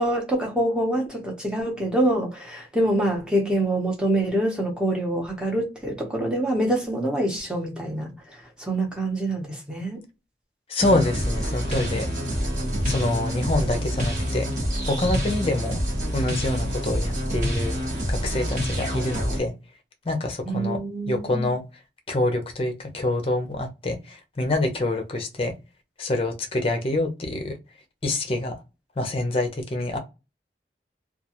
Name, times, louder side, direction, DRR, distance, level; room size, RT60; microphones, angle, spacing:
voice 1, 0.0-8.2 8.6-10.0 20.5-21.5, right 1 dB, 5° right, 0.7 m, -25 dB
voice 2, 10.7-12.1 12.9-14.5 14.8-15.8 16.1-17.8 18.1-19.5 20.0-20.8 21.1-21.6 22.1-25.5 26.0-27.5 28.0-28.6 29.0-30.0, left 2 dB, 30° left, 0.5 m, -26 dB
sound 1, 10.8-19.4, equal, 45° right, 0.9 m, -27 dB
2.3 x 2.2 x 2.8 m
head